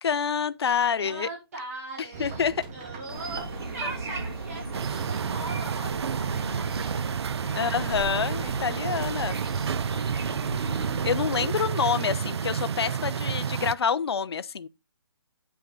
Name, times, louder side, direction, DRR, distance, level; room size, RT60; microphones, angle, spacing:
voice 1, 0.0-1.3 2.2-2.6 7.4-9.3 11.0-14.7, left 7 dB, 75° left, 0.6 m, -27 dB
voice 2, 1.0-8.0 11.5-11.7, right 2 dB, 35° right, 4.8 m, -41 dB
sound 1, 2.1-10.9, right 4 dB, 20° right, 0.9 m, -44 dB
sound 2, 3.1-11.5, right 2 dB, 70° right, 3.2 m, -35 dB
sound 3, 4.7-13.7, right 7 dB, 85° right, 0.4 m, -30 dB
8.5 x 5.6 x 4.0 m
hypercardioid pair, 175°, 13 cm